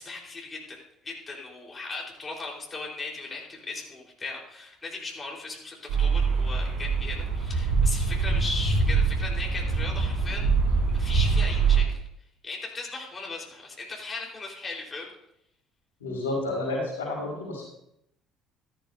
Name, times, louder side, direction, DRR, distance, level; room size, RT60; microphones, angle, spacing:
voice 1, 0.0-10.5 10.9-12.0 12.4-15.1, left 3 dB, 25° left, -2 dB, 4.2 m, -37 dB
sound 1, 5.9-11.8, right 4 dB, 70° right, 4.2 m, -24 dB
voice 2, 16.0-17.6, left 2 dB, 85° left, -5 dB, 4.8 m, -30 dB
14.0 x 14.0 x 2.7 m, 0.78 s
hypercardioid pair, 60°, 0 cm